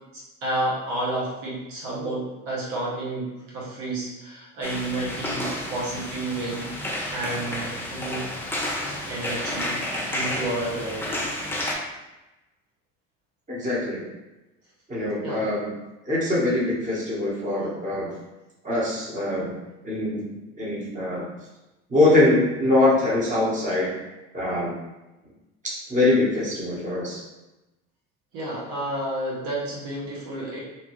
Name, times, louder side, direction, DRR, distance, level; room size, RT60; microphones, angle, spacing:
voice 1, 0.4-6.7 7.1-8.3 9.0-11.1 15.2-15.5 28.3-30.6, right 1 dB, 65° right, -5 dB, 0.9 m, -30 dB
sound 1, 4.6-11.7, left 1 dB, 5° left, 0.6 m, -31 dB
voice 2, 13.5-14.0 14.9-15.7 16.1-18.1 18.6-19.5 19.8-20.3 20.6-21.3 21.9-23.9 24.3-24.7 25.6-27.2, left 2 dB, 20° right, -6 dB, 1.2 m, -23 dB
2.8 x 2.2 x 3.0 m, 1.0 s
hypercardioid pair, 75°, 35 cm